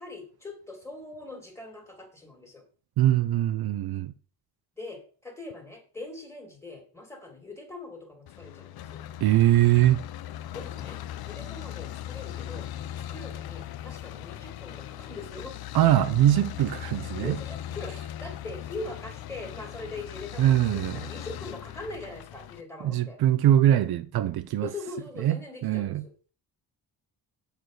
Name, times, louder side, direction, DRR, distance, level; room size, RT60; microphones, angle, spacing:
voice 1, 0.0-2.6 4.8-9.0 10.5-11.0 11.3-12.7 13.1-15.5 16.9-23.2 24.6-26.1, left 2 dB, 5° left, 2.2 m, -41 dB
voice 2, 3.0-4.1 9.2-10.0 15.7-17.4 20.4-21.0 22.8-24.7 25.2-25.4 25.6-26.0, right 12 dB, 65° right, 0.6 m, -22 dB
sound 1, 8.3-22.6, left 12 dB, 65° left, 0.6 m, -39 dB
8.1 x 4.7 x 6.4 m
cardioid pair, 180°, 41 cm